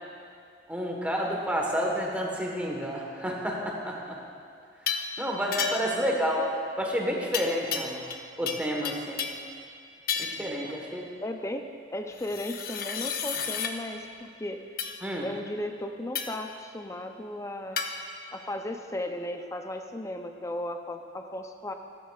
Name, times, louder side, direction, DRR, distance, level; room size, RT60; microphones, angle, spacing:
voice 1, 0.7-4.2 5.2-6.5 6.8-8.0 8.4-9.2 10.2-11.0 15.0-15.3, equal, 10° right, -1 dB, 1.3 m, -30 dB
sound 1, 4.9-5.1 5.5-6.0 7.3-8.2 8.5-9.5 10.1-10.5 12.2-13.7 14.8-15.0 16.1-16.5 17.8-17.9, left 6 dB, 55° left, 0.7 m, -32 dB
voice 2, 5.8-6.2 10.6-10.7 11.2-11.6 11.9-14.8 15.2-17.8 18.3-21.7, left 1 dB, 15° left, 5 dB, 0.5 m, -36 dB
14.0 x 13.0 x 2.4 m, 2.3 s
head